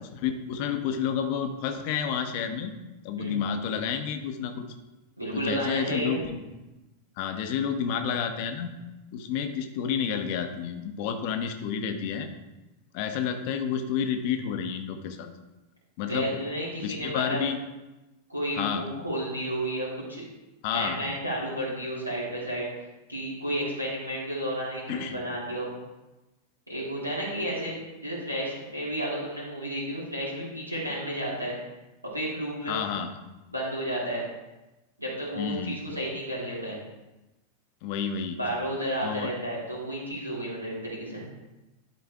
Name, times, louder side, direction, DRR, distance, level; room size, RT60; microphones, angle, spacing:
voice 1, 0.2-2.7 3.0-4.6 5.3-6.4 7.2-8.7 9.1-12.3 12.9-15.3 16.0-16.4 16.8-17.6 18.5-18.9 20.6-21.2 24.9-25.2 32.7-33.1 35.3-35.8 37.8-38.4 39.0-39.3, left 7 dB, 45° left, 7 dB, 0.9 m, -30 dB
voice 2, 5.2-6.2 16.1-17.4 18.3-20.2 20.7-22.8 23.1-25.7 26.7-31.5 32.0-32.8 33.5-34.2 35.0-36.8 38.4-41.2, right 1 dB, 90° right, -6 dB, 3.0 m, -32 dB
11.5 x 4.4 x 3.5 m, 1.0 s
figure-of-eight pair, 90°, 0 cm